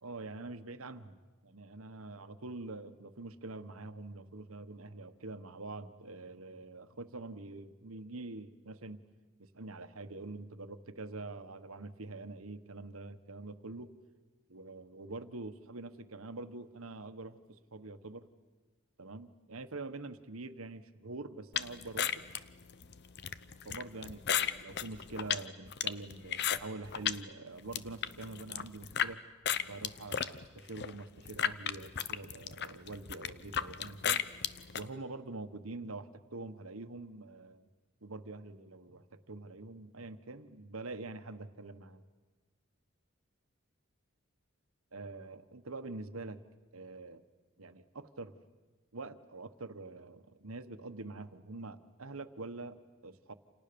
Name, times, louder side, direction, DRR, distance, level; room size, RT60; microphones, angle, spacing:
voice 1, 0.0-9.0 9.4-13.9 14.5-18.3 19.0-22.2 23.6-29.2 29.6-34.2 34.7-37.7 38.0-42.0 44.9-46.4 46.7-47.2 47.6-48.4 48.9-53.3, right 2 dB, 85° right, 10 dB, 1.4 m, -45 dB
sound 1, 21.5-27.2 27.6-29.1 29.4-34.8, left 9 dB, 55° left, 0.9 m, -34 dB
29.0 x 28.0 x 7.0 m, 1.3 s
head